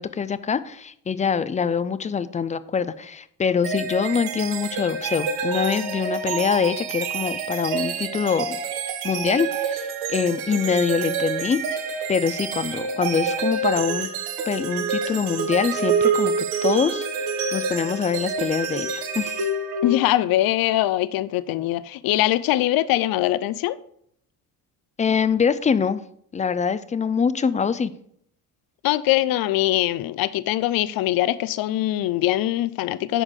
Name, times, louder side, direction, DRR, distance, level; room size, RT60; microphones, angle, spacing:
voice 1, 0.0-8.6 9.0-11.6 12.1-14.1 14.5-16.3 16.6-17.0 17.5-19.5 25.0-26.0 26.3-27.9, left 6 dB, 20° left, 0.4 m, -24 dB
sound 1, 3.6-20.3, right 5 dB, 85° right, 1.3 m, -27 dB
voice 2, 19.8-23.8 28.8-33.2, left 15 dB, 70° left, 0.6 m, -22 dB
10.0 x 6.3 x 3.7 m
cardioid pair, 125°, 37 cm